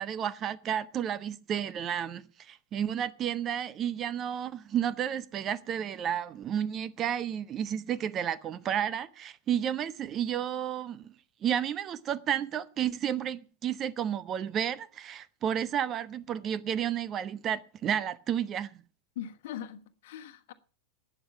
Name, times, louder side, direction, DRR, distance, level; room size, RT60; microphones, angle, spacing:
voice 1, 0.0-11.1 11.4-18.7, right 9 dB, 30° right, 0.7 m, -32 dB
voice 2, 19.1-20.5, left 10 dB, 55° left, 1.2 m, -41 dB
12.0 x 9.0 x 7.2 m
figure-of-eight pair, 90°, 0 cm